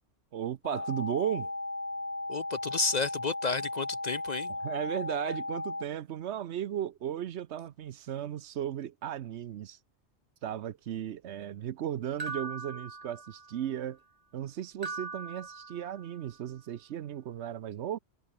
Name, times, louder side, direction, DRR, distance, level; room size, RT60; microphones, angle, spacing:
voice 1, 0.3-1.5 4.5-9.8 10.4-14.0 14.3-18.0, right 10 dB, 75° right, 1.0 m, -35 dB
sound 1, 0.6-5.8, left 2 dB, 15° left, 1.0 m, -36 dB
voice 2, 2.3-4.5, left 4 dB, 45° left, 0.7 m, -31 dB
sound 2, 12.2-13.7 14.8-16.3, right 3 dB, 35° right, 1.7 m, -41 dB
omnidirectional pair, 1.2 m